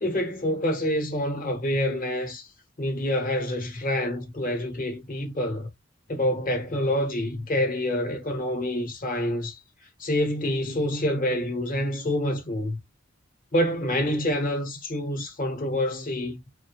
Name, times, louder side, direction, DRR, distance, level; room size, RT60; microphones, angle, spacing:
voice 1, 0.0-2.5 2.8-5.7 6.1-9.6 10.0-12.8 13.5-16.4, left 1 dB, 45° left, 0.9 m, -27 dB
2.4 x 2.2 x 2.9 m
head